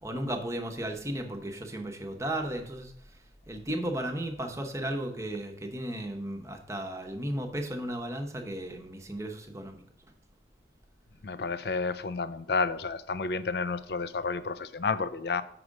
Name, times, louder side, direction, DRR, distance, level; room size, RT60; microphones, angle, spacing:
voice 1, 0.0-2.9 3.5-9.8, right 1 dB, 15° right, 0.8 m, -35 dB
voice 2, 11.2-15.4, left 4 dB, 65° left, 0.5 m, -31 dB
6.1 x 4.9 x 6.3 m
head